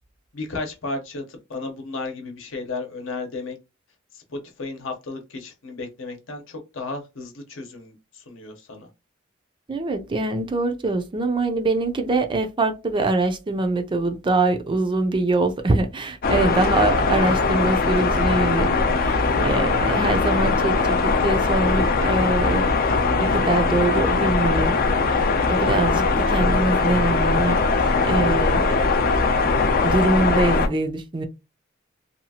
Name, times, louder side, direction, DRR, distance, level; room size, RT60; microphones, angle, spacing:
voice 1, 0.3-3.6 4.1-8.9, left 3 dB, 70° left, 0.8 m, -34 dB
voice 2, 9.7-18.8 19.0-22.7 23.2-24.8 25.1-25.2 25.5-27.6 28.0-28.7 29.8-31.3, right 2 dB, 25° right, 0.4 m, -23 dB
sound 1, 16.2-30.7, left 3 dB, 45° left, 0.4 m, -20 dB
2.8 x 2.3 x 2.8 m
head